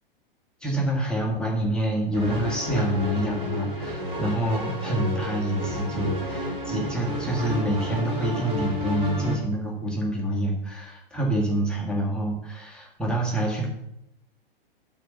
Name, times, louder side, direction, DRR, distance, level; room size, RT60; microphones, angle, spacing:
voice 1, 0.6-13.7, right 1 dB, 5° left, -4 dB, 1.6 m, -27 dB
sound 1, 2.1-9.4, left 1 dB, 20° right, 2.4 m, -31 dB
11.5 x 4.0 x 5.8 m, 0.80 s
figure-of-eight pair, 110°, 29 cm